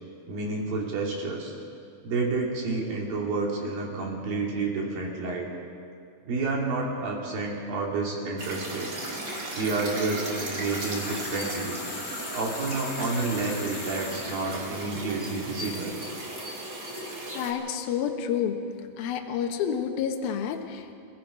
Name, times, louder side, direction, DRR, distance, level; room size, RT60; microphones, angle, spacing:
voice 1, 0.3-1.5 2.0-5.5 6.2-9.0 9.5-11.8 12.3-16.0, right 3 dB, 55° right, -2 dB, 4.4 m, -30 dB
sound 1, 8.4-17.5, right 1 dB, 30° right, 2.0 m, -36 dB
sound 2, 10.5-14.5, left 4 dB, 45° left, 3.7 m, -39 dB
voice 2, 17.3-18.6 19.0-20.9, left 8 dB, 65° left, 3 dB, 2.7 m, -29 dB
28.5 x 18.5 x 5.2 m, 2.4 s
omnidirectional pair, 5.4 m